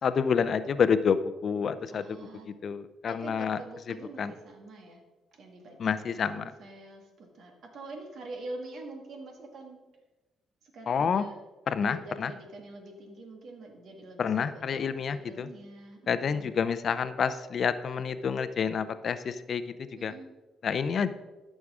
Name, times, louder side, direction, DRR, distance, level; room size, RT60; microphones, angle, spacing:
voice 1, 0.0-3.6 3.9-4.3 5.8-6.5 10.9-11.2 11.7-12.3 14.2-15.5 16.1-20.1 20.6-21.1, left 6 dB, 55° left, 13 dB, 0.5 m, -29 dB
voice 2, 1.9-2.5 3.1-5.0 5.3-5.9 6.3-9.8 10.6-11.4 11.8-16.5 20.0-20.3, right 2 dB, 65° right, 3 dB, 1.8 m, -45 dB
13.5 x 6.3 x 3.6 m, 1.1 s
cardioid pair, 90°, 0 cm